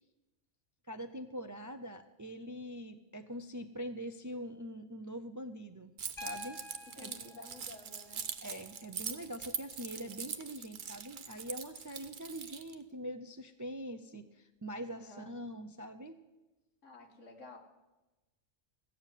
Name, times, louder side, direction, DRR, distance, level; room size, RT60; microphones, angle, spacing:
voice 1, 0.9-5.9 6.2-6.6 7.0-7.1 8.4-16.2, equal, 30° right, 9 dB, 0.3 m, -43 dB
Keys jangling, 6.0-12.7, right 7 dB, 50° right, 0.8 m, -42 dB
Piano, 6.2-10.2 11.7-11.8, left 2 dB, 50° left, 1.6 m, -51 dB
voice 2, 6.8-8.3 14.8-15.4 16.8-17.6, left 2 dB, 85° left, 3 dB, 2.0 m, -52 dB
15.5 x 7.2 x 9.0 m, 1.1 s
omnidirectional pair, 1.2 m